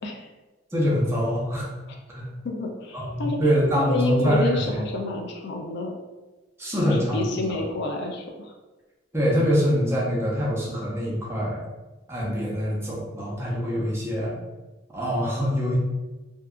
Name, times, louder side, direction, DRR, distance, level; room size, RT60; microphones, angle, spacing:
voice 1, 0.7-1.7 2.1-2.3 2.9-4.8 6.6-7.2 9.1-11.6 12.1-14.3 14.9-15.8, equal, 15° right, -5 dB, 0.6 m, -24 dB
voice 2, 2.4-3.4 3.7-5.9 6.8-8.5, left 2 dB, 60° left, 2 dB, 0.4 m, -28 dB
2.7 x 2.3 x 2.4 m, 1.2 s
head